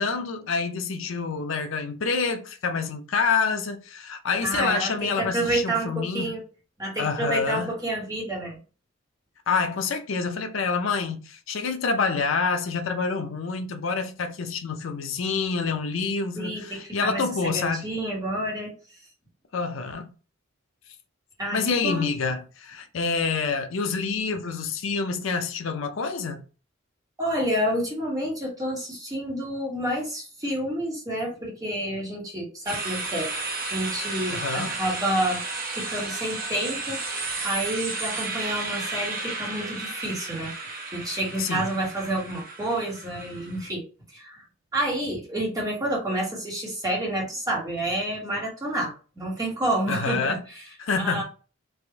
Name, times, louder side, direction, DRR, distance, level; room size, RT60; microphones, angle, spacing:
voice 1, 0.0-6.4 7.0-7.7 9.5-17.9 19.5-20.1 21.5-26.4 34.3-34.8 41.4-41.7 49.9-50.4 50.8-51.2, left 4 dB, 70° left, 0.6 m, -27 dB
voice 2, 4.4-6.4 6.8-8.6 16.4-18.7 21.4-22.1 27.2-33.3 33.7-35.4 35.7-37.0 37.4-40.5 40.9-43.8 44.1-44.4 44.7-50.6 51.0-51.2, right 1 dB, 20° right, 1.3 m, -29 dB
sound 1, 32.7-43.7, right 3 dB, 45° right, 0.8 m, -33 dB
3.5 x 2.5 x 3.4 m
head